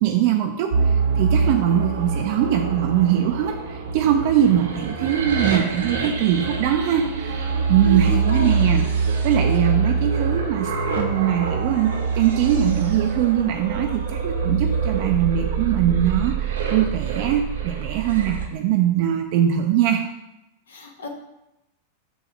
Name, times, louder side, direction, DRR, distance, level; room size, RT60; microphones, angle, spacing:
voice 1, 0.0-8.9 9.2-20.0, right 10 dB, 45° right, 3 dB, 0.5 m, -22 dB
sound 1, 0.7-18.5, right 5 dB, 65° right, 0.9 m, -24 dB
voice 2, 7.8-8.6 20.7-21.1, left 1 dB, 65° left, 4 dB, 0.9 m, -31 dB
7.2 x 2.7 x 5.7 m, 0.91 s
figure-of-eight pair, 90°, 0 cm